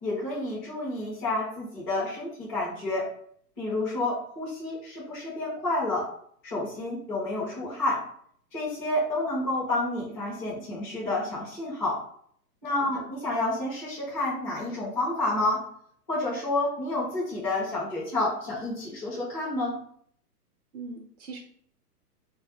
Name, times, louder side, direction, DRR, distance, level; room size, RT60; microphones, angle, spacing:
voice 1, 0.0-3.1 3.6-6.1 6.4-8.0 8.5-12.0 12.6-15.6 16.1-19.7, left 2 dB, 10° left, -9 dB, 0.4 m, -29 dB
voice 2, 12.7-13.1 20.7-21.4, right 4 dB, 65° right, 1 dB, 0.7 m, -41 dB
2.1 x 2.1 x 2.9 m, 0.62 s
hypercardioid pair, 140°, 48 cm